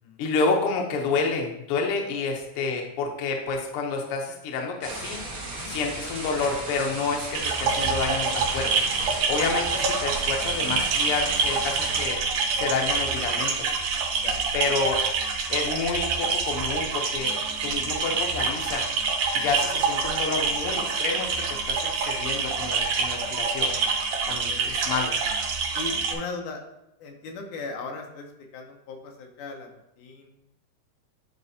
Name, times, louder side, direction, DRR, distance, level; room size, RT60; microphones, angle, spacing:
voice 1, 0.2-5.2 5.7-8.7 9.3-12.2 12.6-13.8 14.5-15.0 15.5-17.3 17.6-18.9 19.3-23.7 24.3-25.1, left 4 dB, 65° left, 2 dB, 1.5 m, -29 dB
sound 1, 4.8-12.1, right 2 dB, 75° right, 0.8 m, -36 dB
voice 2, 5.4-5.7 9.4-9.5 14.2-14.4 24.5-24.7 25.7-26.6 27.0-30.3, left 3 dB, 85° left, 3 dB, 2.4 m, -38 dB
sound 2, 7.3-26.1, right 4 dB, 90° right, 2.3 m, -26 dB
9.6 x 4.2 x 2.7 m, 0.84 s
omnidirectional pair, 3.5 m